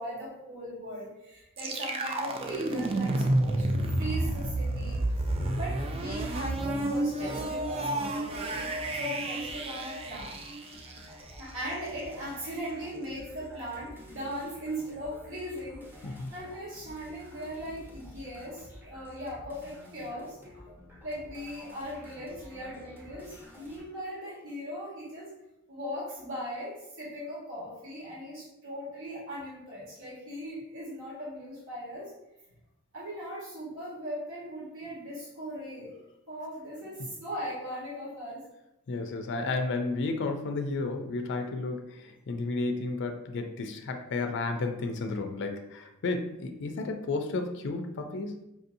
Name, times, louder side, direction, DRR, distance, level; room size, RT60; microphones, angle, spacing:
voice 1, 0.0-5.0 5.6-10.4 11.4-20.6 21.0-25.3 25.7-32.1 32.9-35.9 36.3-38.4, equal, 65° right, -7 dB, 1.4 m, -39 dB
sound 1, 1.6-11.4, right 1 dB, 25° right, 0.3 m, -30 dB
sound 2, 8.3-9.5 10.0-23.8, equal, 10° right, 0.9 m, -51 dB
voice 2, 38.9-48.4, left 3 dB, 55° left, 5 dB, 0.4 m, -32 dB
4.8 x 2.6 x 2.6 m, 0.87 s
head